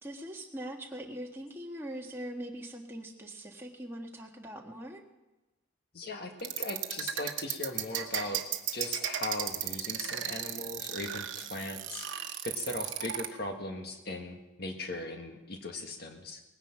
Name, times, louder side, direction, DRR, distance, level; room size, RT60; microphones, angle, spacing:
voice 1, 0.0-5.0, right 1 dB, 10° right, 0 dB, 1.4 m, -42 dB
voice 2, 5.9-8.4 8.7-12.1 12.4-16.4, left 2 dB, 50° left, 4 dB, 1.7 m, -39 dB
sound 1, 6.4-13.3, right 10 dB, 65° right, 1.1 m, -34 dB
19.0 x 10.5 x 5.9 m, 1.1 s
head